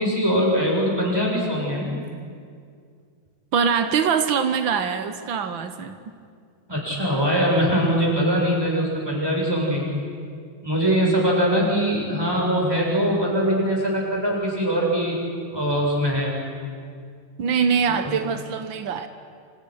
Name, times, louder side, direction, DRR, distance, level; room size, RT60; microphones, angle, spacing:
voice 1, 0.0-1.9 6.7-10.0 10.6-15.2 15.5-16.3 17.8-18.2, equal, 10° right, -3 dB, 6.9 m, -22 dB
voice 2, 3.5-6.1 17.4-19.1, right 6 dB, 90° right, 8 dB, 1.9 m, -23 dB
29.0 x 26.0 x 6.5 m, 2.2 s
omnidirectional pair, 2.1 m